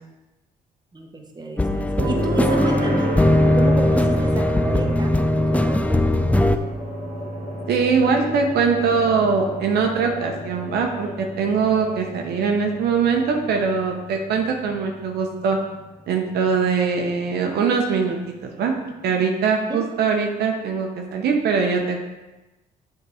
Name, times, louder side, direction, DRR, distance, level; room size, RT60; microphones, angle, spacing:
voice 1, 0.9-3.1 3.5-5.2 5.5-6.1 19.7-19.8, right 2 dB, 25° right, 2 dB, 1.2 m, -31 dB
sound 1, 1.6-6.6, left 1 dB, 10° left, 0.4 m, -20 dB
sound 2, 2.0-15.8 18.1-18.2, right 1 dB, 60° right, 1.4 m, -30 dB
sound 3, 6.2-17.5, left 2 dB, 45° left, 1.1 m, -40 dB
voice 2, 7.7-15.6 16.1-18.7 19.0-22.0, right 5 dB, 80° right, 2 dB, 0.8 m, -22 dB
7.4 x 3.8 x 4.8 m, 1.1 s
cardioid pair, 70°, 17 cm